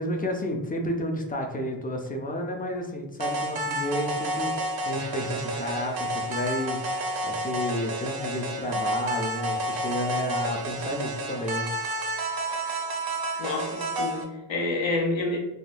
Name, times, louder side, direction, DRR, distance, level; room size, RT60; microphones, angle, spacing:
voice 1, 0.0-11.7, left 1 dB, 20° left, 3 dB, 0.4 m, -31 dB
sound 1, 3.2-14.2, right 1 dB, 50° right, 0.5 m, -30 dB
voice 2, 13.4-15.4, left 2 dB, 75° left, 0 dB, 0.8 m, -28 dB
3.5 x 2.2 x 2.5 m, 1.0 s
wide cardioid pair, 120°, 47 cm